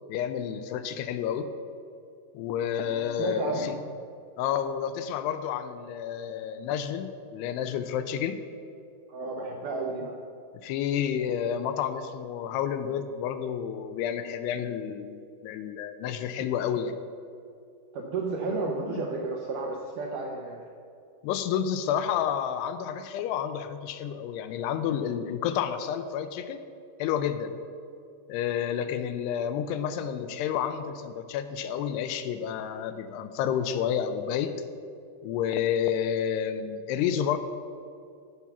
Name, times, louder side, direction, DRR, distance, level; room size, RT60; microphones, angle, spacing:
voice 1, 0.1-1.5 2.3-3.7 4.4-8.4 10.6-17.0 18.5-18.6 18.9-19.1 21.2-26.6 27.0-27.5 28.3-34.5 35.2-37.4, left 9 dB, 85° left, 10 dB, 2.6 m, -30 dB
voice 2, 2.8-3.7 9.1-10.2 17.9-20.6 28.6-28.7, right 3 dB, 80° right, -1 dB, 1.9 m, -32 dB
15.0 x 5.6 x 5.9 m, 2.4 s
omnidirectional pair, 4.8 m